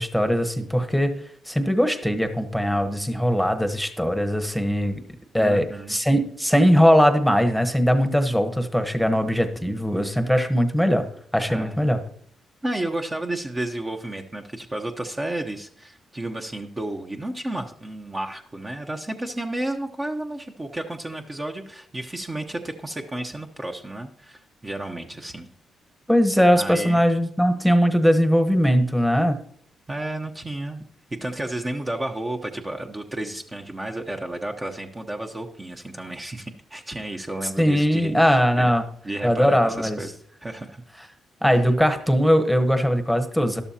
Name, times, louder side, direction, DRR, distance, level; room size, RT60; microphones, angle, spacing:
voice 1, 0.0-5.0 5.3-11.0 11.3-12.0 26.1-29.4 37.6-38.8 39.2-40.0 41.4-43.6, equal, ahead, 8 dB, 1.1 m, -20 dB
voice 2, 5.4-6.0 11.5-11.8 12.6-25.5 26.5-27.0 29.9-30.8 31.2-38.7 39.0-40.1 40.4-40.8, right 1 dB, 25° right, 3 dB, 0.9 m, -32 dB
12.0 x 12.0 x 2.9 m, 0.63 s
supercardioid pair, 60°, 0 cm